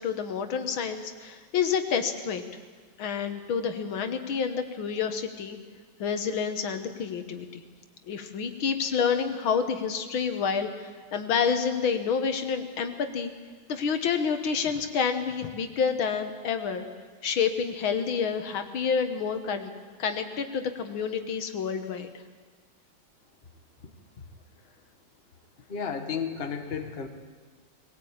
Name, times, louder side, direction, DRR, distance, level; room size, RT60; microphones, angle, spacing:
voice 1, 0.0-2.4 3.0-5.6 6.0-7.6 8.0-13.3 13.7-16.9 17.2-19.7 20.0-22.1, left 6 dB, 75° left, 7 dB, 2.1 m, -28 dB
voice 2, 25.7-27.1, left 6 dB, 30° left, 6 dB, 1.5 m, -33 dB
21.0 x 18.0 x 8.7 m, 1.5 s
omnidirectional pair, 2.2 m